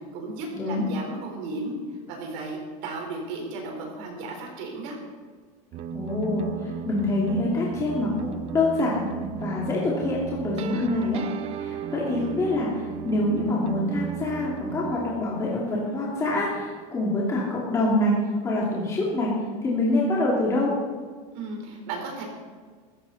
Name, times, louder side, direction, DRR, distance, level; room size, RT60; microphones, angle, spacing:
voice 1, 0.1-1.8 2.1-5.0 21.3-22.2, right 3 dB, 55° right, 1 dB, 4.2 m, -34 dB
sound 1, 5.7-15.0, right 7 dB, 30° right, 0.6 m, -35 dB
voice 2, 5.9-11.2 11.6-18.2 18.4-19.3 19.6-20.7, left 2 dB, 15° left, -5 dB, 2.6 m, -26 dB
15.5 x 15.0 x 4.2 m, 1.5 s
supercardioid pair, 155°, 19 cm